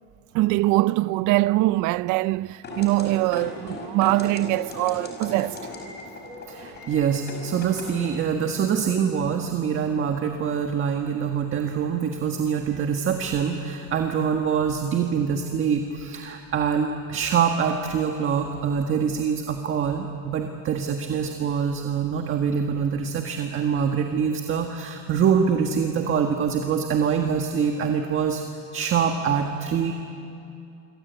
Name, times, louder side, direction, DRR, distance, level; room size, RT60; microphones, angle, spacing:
voice 1, 0.3-5.6, right 18 dB, 80° right, 0.6 m, -22 dB
sound 1, 2.6-8.2, left 2 dB, 35° left, 5.0 m, -37 dB
voice 2, 6.5-28.4 28.7-29.9, right 7 dB, 45° right, 1.7 m, -24 dB
27.0 x 24.5 x 8.2 m
cardioid pair, 140°, 30 cm